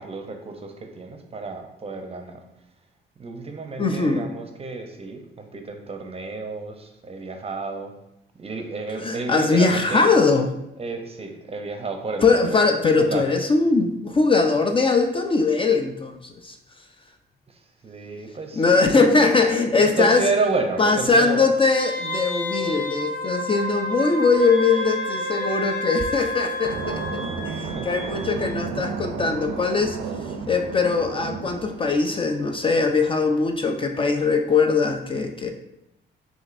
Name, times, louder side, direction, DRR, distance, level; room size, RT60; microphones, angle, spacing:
voice 1, 0.0-2.4 3.2-8.0 8.3-10.2 10.8-12.7 12.9-13.4 17.5-21.6 22.7-22.8 27.0-27.2 27.6-28.4, right 3 dB, 30° right, 4 dB, 0.6 m, -31 dB
voice 2, 3.8-4.2 9.0-10.5 12.2-16.6 18.6-20.2 20.8-30.0 30.3-35.5, left 4 dB, 25° left, 4 dB, 0.4 m, -21 dB
Wind instrument woodwind instrument, 21.8-27.3 27.7-27.8, equal, 80° left, 0.8 m, -30 dB
sound 1, 24.4-28.7, left 5 dB, 40° left, 1.5 m, -36 dB
sound 2, 26.6-33.0, right 5 dB, 80° right, 0.4 m, -33 dB
6.2 x 2.6 x 2.5 m, 0.84 s
cardioid pair, 90°, 20 cm